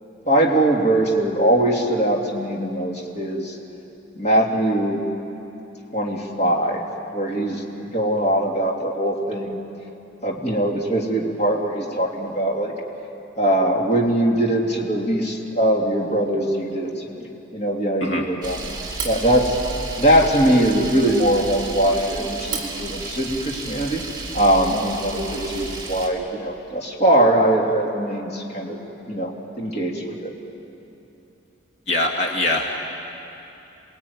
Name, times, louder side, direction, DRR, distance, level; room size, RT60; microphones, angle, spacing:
voice 1, 0.2-3.6 4.1-5.0 5.9-6.8 7.1-7.6 7.9-9.6 10.2-12.7 13.4-18.6 19.0-19.6 20.0-24.0 24.3-28.8 29.1-30.3, right 1 dB, 35° left, -1 dB, 2.9 m, -21 dB
Camera, 18.4-26.1, right 3 dB, 20° right, 3.0 m, -32 dB
voice 2, 31.9-32.7, left 1 dB, 65° left, 0 dB, 2.4 m, -22 dB
28.0 x 20.0 x 9.7 m, 2.9 s
head